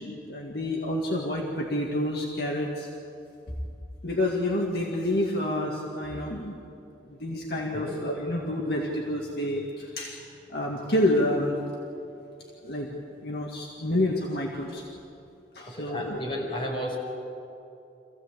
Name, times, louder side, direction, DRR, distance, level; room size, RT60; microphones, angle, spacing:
voice 1, 0.0-2.9 4.0-6.5 7.1-10.2 10.5-11.6 12.6-12.9 13.2-14.8 15.5-16.2, left 1 dB, 60° left, -1 dB, 2.1 m, -28 dB
voice 2, 15.6-16.9, equal, 30° left, -2 dB, 5.3 m, -32 dB
26.0 x 16.0 x 8.3 m, 2.7 s
head